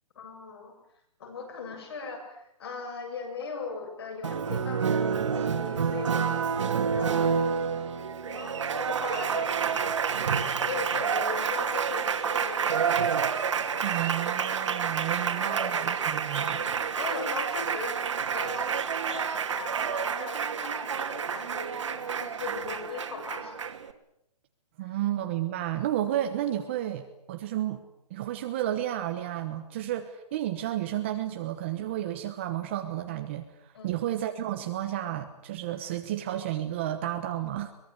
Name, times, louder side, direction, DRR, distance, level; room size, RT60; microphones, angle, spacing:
voice 1, 0.2-0.8 1.2-7.5 8.3-10.0 10.3-12.9 14.7-14.9 15.2-16.1 16.3-16.7 17.0-18.0 18.3-23.6 24.8-25.0 33.7-34.1, left 5 dB, 40° left, 4 dB, 7.7 m, -39 dB
Applause, 4.2-23.9, right 6 dB, 50° right, 2.5 m, -29 dB
voice 2, 13.8-16.6 24.8-27.8 28.1-37.7, right 12 dB, 20° right, 6 dB, 1.1 m, -32 dB
23.0 x 22.0 x 9.6 m, 0.76 s
hypercardioid pair, 175°, 20 cm